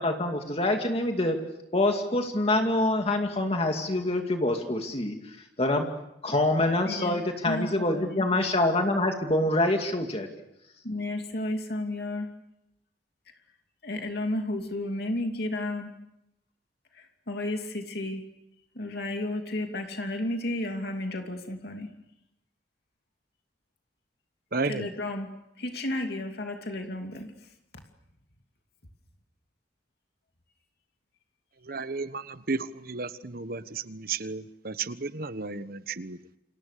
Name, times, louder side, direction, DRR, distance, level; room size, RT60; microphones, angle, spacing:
voice 1, 0.0-1.4 1.7-5.9 6.2-10.3, left 2 dB, 35° left, 4 dB, 2.4 m, -26 dB
voice 2, 6.9-8.3 10.8-12.3 13.8-15.9 16.9-18.2 18.7-21.9 24.6-25.3 25.6-27.3, left 1 dB, 60° left, 4 dB, 2.8 m, -32 dB
voice 3, 24.5-24.9 31.7-36.2, right 4 dB, 55° right, 13 dB, 1.2 m, -33 dB
28.5 x 27.0 x 6.7 m, 0.84 s
head